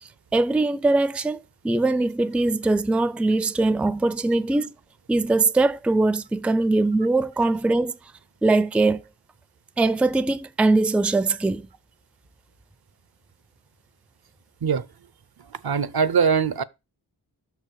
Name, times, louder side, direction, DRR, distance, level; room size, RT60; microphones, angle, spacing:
voice 1, 0.3-4.7 5.1-7.9 8.4-9.0 9.8-11.7, right 2 dB, 5° right, 0.4 m, -21 dB
voice 2, 15.5-16.6, right 6 dB, 65° right, 0.5 m, -22 dB
6.3 x 4.7 x 6.5 m
wide cardioid pair, 60°, 41 cm